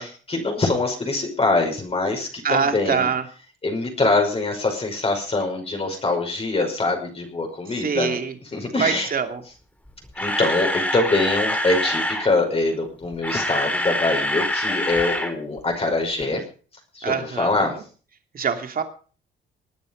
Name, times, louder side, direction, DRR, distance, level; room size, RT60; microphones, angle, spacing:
voice 1, 0.0-3.1 3.6-9.1 10.2-16.4 16.9-17.8, left 2 dB, 30° left, 2 dB, 5.6 m, -24 dB
voice 2, 2.4-3.2 7.8-8.3 8.8-9.4 17.0-17.7 18.3-18.8, right 6 dB, 45° right, 6 dB, 2.7 m, -24 dB
Camera, 9.9-12.3 13.0-15.3 15.6-15.7 16.2-16.3, left 1 dB, 10° left, 3.4 m, -25 dB
20.0 x 9.4 x 5.4 m, 0.40 s
cardioid pair, 90°, 20 cm